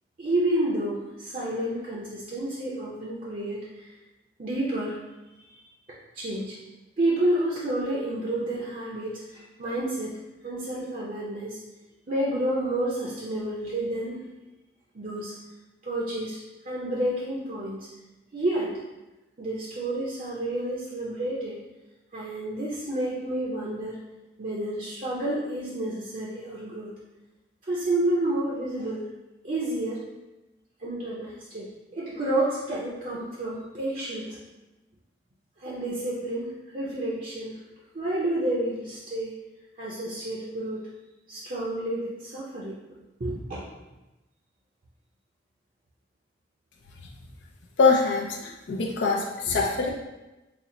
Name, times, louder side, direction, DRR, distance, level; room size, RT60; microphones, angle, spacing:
voice 1, 0.2-3.9 4.4-5.0 5.5-5.6 6.1-6.6 7.0-10.1 10.4-11.6 12.1-14.2 14.9-15.3 15.8-16.4 16.6-17.9 18.3-18.7 19.4-21.6 22.1-24.0 24.4-26.9 27.7-29.0 29.4-30.0 30.8-34.4 35.6-37.6 37.9-39.4 39.8-40.8 41.3-42.8 43.2-43.6, right 1 dB, 45° right, -6 dB, 0.6 m, -30 dB
voice 2, 47.8-49.9, left 4 dB, 75° left, -1 dB, 0.5 m, -23 dB
4.2 x 2.0 x 3.7 m, 1.1 s
head